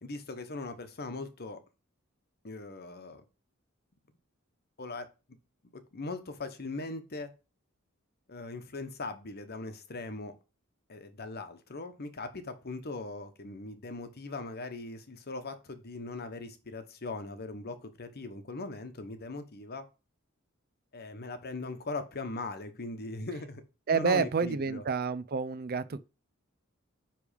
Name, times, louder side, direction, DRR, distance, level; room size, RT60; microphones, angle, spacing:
voice 1, 0.0-1.6 2.4-3.2 4.8-5.1 5.7-7.3 8.3-10.3 10.9-19.9 20.9-23.6 23.9-24.8, left 3 dB, 50° left, 1.0 m, -40 dB
voice 2, 23.9-26.0, right 5 dB, 45° right, 0.5 m, -29 dB
9.8 x 3.4 x 5.1 m
head